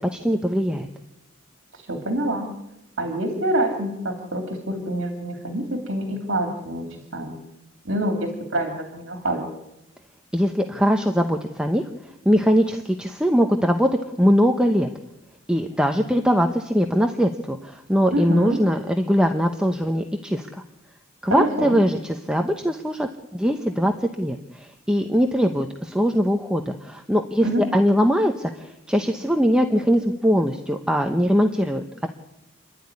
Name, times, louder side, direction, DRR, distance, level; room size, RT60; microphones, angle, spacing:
voice 1, 0.1-0.9 10.3-11.8 12.2-13.9 14.2-14.9 15.5-20.6 21.2-32.1, equal, 5° right, 4 dB, 0.9 m, -21 dB
voice 2, 1.7-2.5 3.0-6.8 7.1-7.4 7.8-9.5 18.1-18.6 21.2-21.8 27.4-27.6, right 1 dB, 60° right, 3 dB, 2.9 m, -26 dB
28.5 x 12.0 x 9.7 m, 0.94 s
head